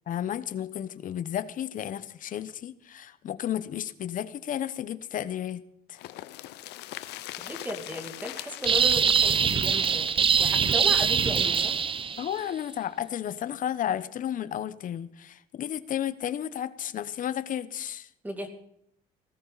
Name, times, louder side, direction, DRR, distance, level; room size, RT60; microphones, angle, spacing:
voice 1, 0.1-5.6 5.9-6.0 12.2-18.1, left 10 dB, 50° left, 15 dB, 0.9 m, -33 dB
sound 1, 5.9-11.7 12.0-12.1 12.4-12.5, left 15 dB, 85° left, 0.7 m, -42 dB
voice 2, 7.4-10.1 10.4-11.8 18.2-18.5, equal, 10° right, 4 dB, 2.4 m, -35 dB
sound 2, 8.7-12.3, right 6 dB, 30° right, 0.7 m, -23 dB
18.0 x 14.5 x 4.0 m, 0.72 s
cardioid pair, 110°, 17 cm